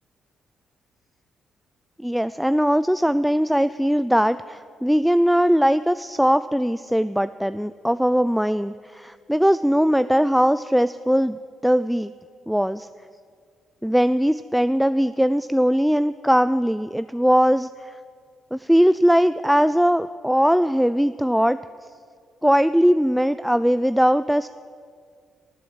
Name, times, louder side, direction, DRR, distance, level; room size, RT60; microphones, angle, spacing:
voice 1, 2.0-12.1 12.5-12.9 13.8-18.0 18.5-21.6 22.4-24.5, equal, ahead, 13 dB, 0.3 m, -20 dB
12.5 x 7.7 x 7.3 m, 2.1 s
hypercardioid pair, 45°, 0 cm